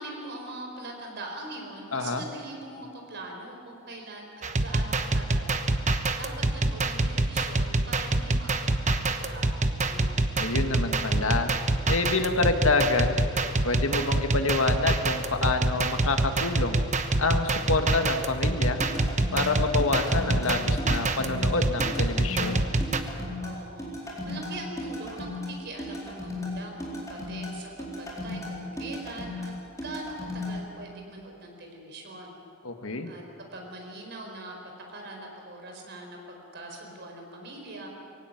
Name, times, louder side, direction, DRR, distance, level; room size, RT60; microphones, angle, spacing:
voice 1, 0.0-5.7 6.2-10.2 23.4-32.4 33.1-33.2 33.5-34.6 34.9-37.9, right 2 dB, 55° right, 2 dB, 4.5 m, -42 dB
voice 2, 1.9-2.2 10.4-11.5 11.9-13.2 13.6-16.8 17.2-18.8 19.3-22.7 32.6-33.1, left 3 dB, 80° left, 6 dB, 1.8 m, -27 dB
sound 1, 4.4-23.0, right 2 dB, 35° right, 1.0 m, -26 dB
sound 2, 18.8-30.5, left 1 dB, 15° left, 4.3 m, -36 dB
22.0 x 16.5 x 9.4 m, 2.7 s
head